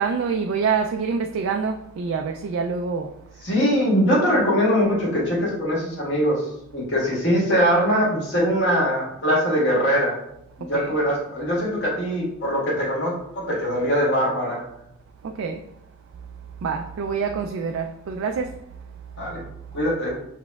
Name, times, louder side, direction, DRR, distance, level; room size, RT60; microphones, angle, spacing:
voice 1, 0.0-3.5 10.6-11.0 15.2-15.7 16.6-18.6, right 5 dB, 65° right, 0.3 m, -26 dB
voice 2, 3.4-6.4 6.7-10.1 10.6-14.6 19.2-19.4 19.7-20.1, equal, 55° left, 1.7 m, -22 dB
5.3 x 4.1 x 2.3 m
head